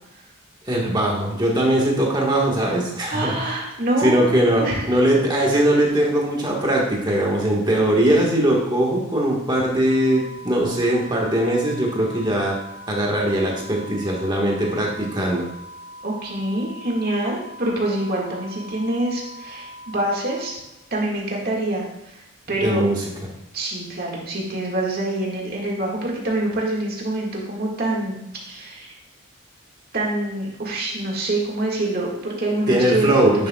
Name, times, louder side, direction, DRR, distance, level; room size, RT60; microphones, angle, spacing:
voice 1, 0.6-3.6 4.0-12.6 12.9-15.5 22.6-23.0 32.7-33.5, right 1 dB, 20° right, -2 dB, 1.5 m, -20 dB
voice 2, 3.1-4.9 16.0-20.6 20.9-22.2 22.5-22.8 23.5-28.2 28.5-28.9 29.9-33.5, right 1 dB, 45° right, -2 dB, 1.8 m, -25 dB
sound 1, 9.9-20.5, equal, 55° left, 0.9 m, -41 dB
10.5 x 6.7 x 2.3 m, 0.89 s
head